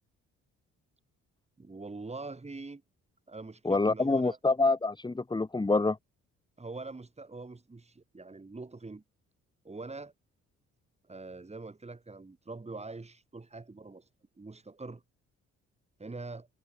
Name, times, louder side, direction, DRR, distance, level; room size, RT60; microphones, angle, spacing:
voice 1, 1.6-2.8 3.3-4.4 6.6-9.0 9.6-10.1 11.1-14.1 14.4-15.0 16.0-16.5, right 3 dB, 20° right, 7.1 m, -44 dB
voice 2, 3.6-6.0, left 3 dB, 15° left, 1.5 m, -26 dB
cardioid pair, 90°, 30 cm